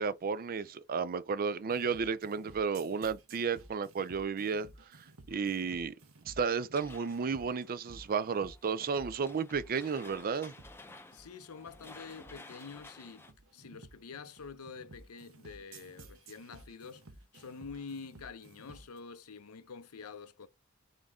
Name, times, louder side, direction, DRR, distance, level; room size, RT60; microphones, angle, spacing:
voice 1, 0.0-4.7 5.3-5.9 6.3-10.5, right 5 dB, 40° right, 0.4 m, -33 dB
sound 1, 1.7-19.0, right 2 dB, 70° right, 0.9 m, -55 dB
sound 2, 6.7-13.3, left 2 dB, 10° left, 0.6 m, -54 dB
voice 2, 11.1-17.1 17.3-20.5, left 5 dB, 90° left, 0.7 m, -47 dB
3.8 x 3.6 x 3.5 m
head